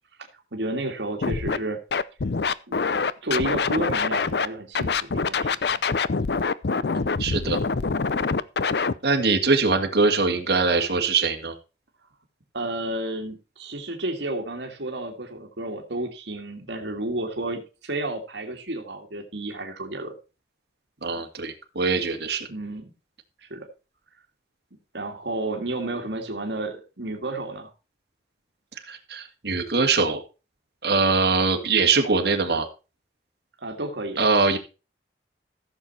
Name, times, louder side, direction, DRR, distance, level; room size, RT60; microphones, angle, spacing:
voice 1, 0.5-1.8 2.7-2.9 3.2-5.8 6.8-7.0 12.5-20.1 22.5-22.8 23.4-23.7 24.9-27.7 33.6-34.3, right 2 dB, 85° right, 2 dB, 2.0 m, -31 dB
Scratching (performance technique), 1.2-1.6 1.9-4.5 4.7-8.9, left 4 dB, 70° left, 0.6 m, -25 dB
voice 2, 7.2-7.6 9.0-11.5 21.0-22.5 28.9-30.2 30.8-32.7 34.2-34.6, right 4 dB, 70° right, 2 dB, 2.2 m, -22 dB
15.0 x 6.9 x 4.2 m, 0.32 s
head